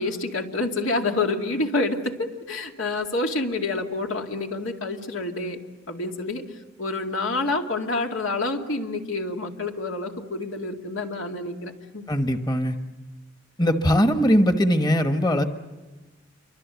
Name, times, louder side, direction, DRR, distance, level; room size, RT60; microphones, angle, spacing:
voice 1, 0.0-5.6 5.9-6.4 6.8-12.1, left 2 dB, 90° left, 3 dB, 2.4 m, -28 dB
voice 2, 12.1-12.8 13.6-15.4, equal, 20° left, 7 dB, 1.2 m, -20 dB
28.5 x 24.0 x 8.2 m, 1.2 s
head